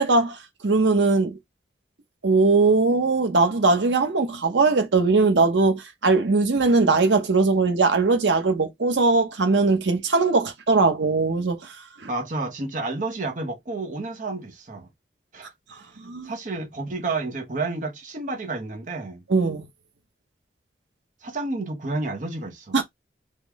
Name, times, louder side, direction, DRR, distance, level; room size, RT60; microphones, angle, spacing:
voice 1, 0.0-1.3 2.2-12.1 16.0-16.3 19.3-19.7 22.7-22.8, right 3 dB, 85° right, 0.7 m, -20 dB
voice 2, 12.0-14.9 15.3-19.2 21.2-22.8, right 3 dB, 45° right, 0.8 m, -31 dB
3.6 x 2.1 x 3.4 m
head